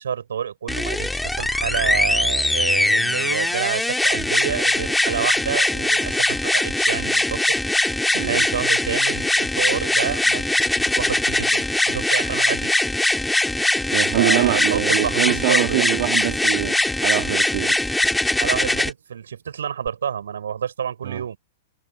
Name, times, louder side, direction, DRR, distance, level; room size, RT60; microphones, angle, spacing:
voice 1, 0.0-7.6 8.1-10.5 11.0-12.7 14.2-16.0 18.3-21.4, right 8 dB, 75° right, 7.7 m, -28 dB
sound 1, 0.7-18.9 19.9-20.0, left 1 dB, 5° left, 5.5 m, -21 dB
voice 2, 13.9-16.8 17.0-17.8 21.0-21.2, right 19 dB, 55° right, 3.4 m, -24 dB
figure-of-eight pair, 105°, 0 cm